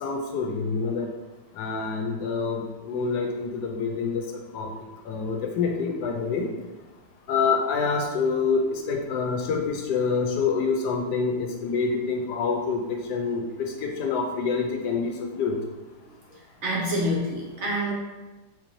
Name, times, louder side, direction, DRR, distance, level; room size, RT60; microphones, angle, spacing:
voice 1, 0.0-1.1 1.6-4.2 4.5-4.8 5.0-6.5 7.3-15.6, left 5 dB, 80° left, 1 dB, 1.2 m, -26 dB
voice 2, 16.6-17.9, equal, 55° right, -4 dB, 0.8 m, -26 dB
3.9 x 3.0 x 2.7 m, 1.2 s
omnidirectional pair, 1.8 m